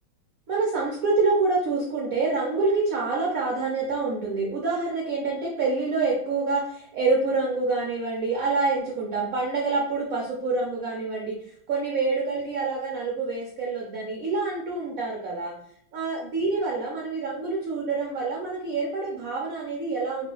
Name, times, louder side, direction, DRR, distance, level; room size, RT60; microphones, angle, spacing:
voice 1, 0.5-11.4 11.7-15.5 15.9-20.3, right 3 dB, 75° right, -2 dB, 0.8 m, -26 dB
3.2 x 2.5 x 3.7 m, 0.67 s
omnidirectional pair, 2.2 m